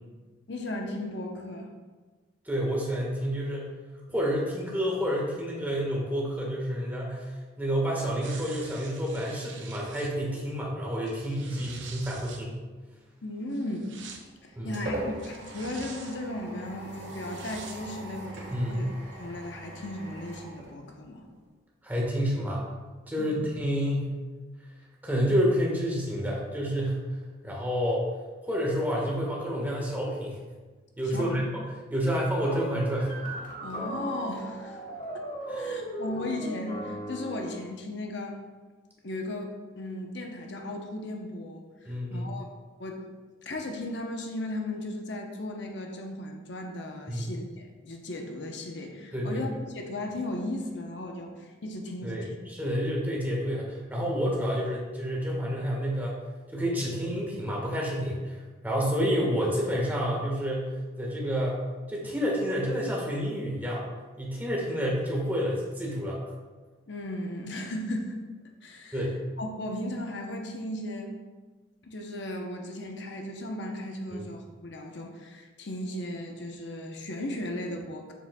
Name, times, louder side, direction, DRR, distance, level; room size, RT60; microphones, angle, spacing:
voice 1, 0.5-1.7 13.2-13.9 14.4-18.4 18.7-18.9 19.1-21.3 23.2-23.4 31.0-31.4 33.6-34.8 35.1-35.2 35.6-38.4 39.0-42.5 42.8-43.0 43.4-52.4 66.9-68.2 68.6-69.1 69.4-71.2 71.8-78.1, left 1 dB, 65° left, 2 dB, 0.8 m, -36 dB
voice 2, 2.5-3.7 4.1-7.3 7.6-12.6 14.5-14.7 18.5-18.9 21.8-22.6 23.1-24.1 25.0-27.0 27.4-28.0 28.4-30.4 31.0-31.5 31.9-33.1 35.5-35.8 41.8-42.3 47.1-47.3 49.1-49.4 52.0-56.2 56.5-58.4 58.6-60.7 61.0-61.6 61.9-63.8 64.2-66.2 68.9-69.2 74.1-74.2, equal, 10° right, -3 dB, 1.3 m, -29 dB
sound 1, 8.2-10.1 10.9-12.4 13.5-14.2 15.2-16.2 17.1-17.8 18.4-18.5, right 5 dB, 80° right, 0.9 m, -46 dB
sound 2, 14.0-21.4, right 1 dB, 60° right, 1.5 m, -41 dB
sound 3, 32.4-37.7, right 1 dB, 45° left, 1.5 m, -37 dB
7.2 x 7.1 x 2.2 m, 1.3 s
head